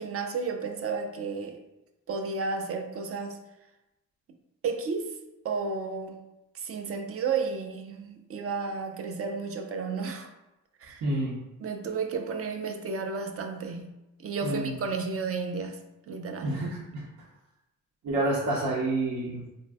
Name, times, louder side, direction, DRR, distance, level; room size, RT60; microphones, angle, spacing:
voice 1, 0.0-1.6 2.1-3.4 4.6-5.2 5.4-6.2 6.5-10.3 10.8-11.1 11.6-15.8 16.1-16.6, right 4 dB, 45° right, 4 dB, 0.4 m, -32 dB
voice 2, 11.0-11.4 14.4-14.8 16.4-17.1 18.0-19.4, right 2 dB, 75° right, -6 dB, 0.7 m, -28 dB
2.5 x 2.2 x 3.3 m, 0.95 s
cardioid pair, 85°, 31 cm